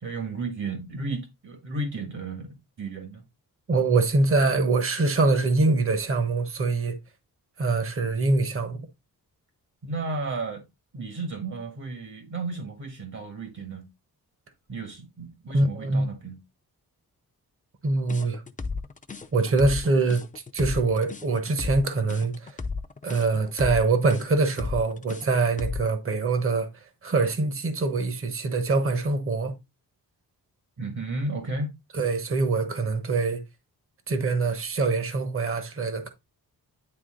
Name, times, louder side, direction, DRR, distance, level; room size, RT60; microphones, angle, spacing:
voice 1, 0.0-3.2 9.8-10.6 10.9-13.9 14.7-16.4 30.8-31.7, right 3 dB, 55° right, 1.8 m, -33 dB
voice 2, 3.7-7.0 7.6-8.8 15.5-16.0 17.8-18.4 19.3-20.2 20.5-22.6 23.0-26.7 27.0-29.5 31.9-33.4 34.1-36.1, right 3 dB, 35° right, 1.2 m, -24 dB
sound 1, 18.1-26.0, left 4 dB, 20° left, 0.6 m, -34 dB
9.8 x 3.6 x 3.8 m
wide cardioid pair, 150°, 37 cm